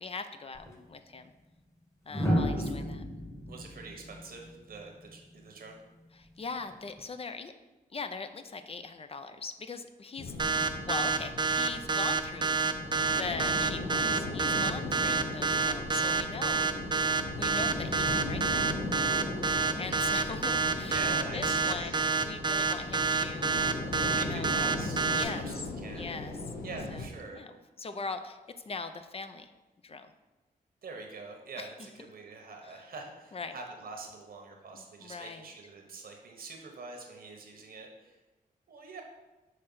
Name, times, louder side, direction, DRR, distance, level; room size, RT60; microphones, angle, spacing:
voice 1, 0.0-1.3 2.1-3.0 6.1-7.5 7.9-10.6 10.8-12.6 13.0-16.7 17.4-18.7 19.8-21.0 21.3-23.6 24.3-24.5 25.1-25.4 25.9-26.3 26.9-27.0 27.3-27.5 27.8-28.4 28.7-29.5 29.8-30.1 31.6-31.7 33.3-33.6 34.7-35.5, left 4 dB, 40° left, 9 dB, 0.5 m, -40 dB
sound 1, 0.5-0.7 2.1-5.2 6.7-7.0, equal, 15° left, 1.2 m, -32 dB
voice 2, 3.5-5.8 10.3-10.6 16.7-17.1 20.8-22.1 24.1-26.1 26.6-27.4 30.8-38.2 38.7-39.0, right 3 dB, 75° right, 2 dB, 1.2 m, -45 dB
sound 2, 10.2-27.1, left 2 dB, 85° left, 1.1 m, -38 dB
sound 3, 10.4-25.2, right 4 dB, 30° right, 0.5 m, -28 dB
6.4 x 3.2 x 5.6 m, 1.1 s
cardioid pair, 80°, 15 cm